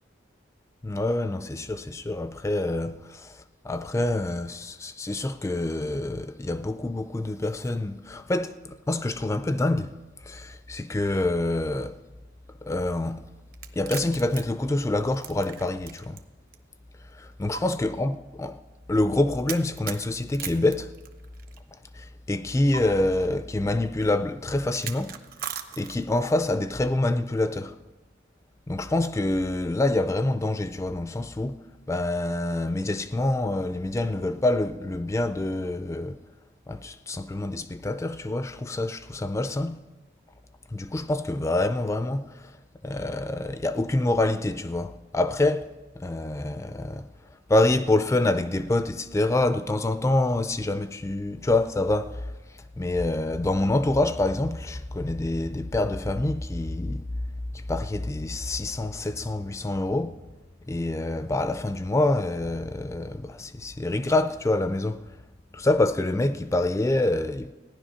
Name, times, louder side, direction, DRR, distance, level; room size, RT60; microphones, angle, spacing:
voice 1, 0.8-9.9 10.2-12.0 12.6-13.2 13.8-16.2 17.1-18.6 18.9-20.9 21.9-25.2 25.8-27.8 28.7-31.6 31.9-36.2 36.7-39.8 40.7-42.5 42.8-45.7 45.9-47.1 47.5-52.3 52.8-57.1 57.5-60.2 60.7-65.1 65.5-67.5, left 2 dB, 15° left, 0.3 m, -26 dB
sound 1, 13.5-16.2 16.5-16.6 17.5-17.6 19.5-21.6 22.7-22.8 24.7-26.2, right 8 dB, 50° right, 0.8 m, -37 dB
15.5 x 10.5 x 5.6 m
head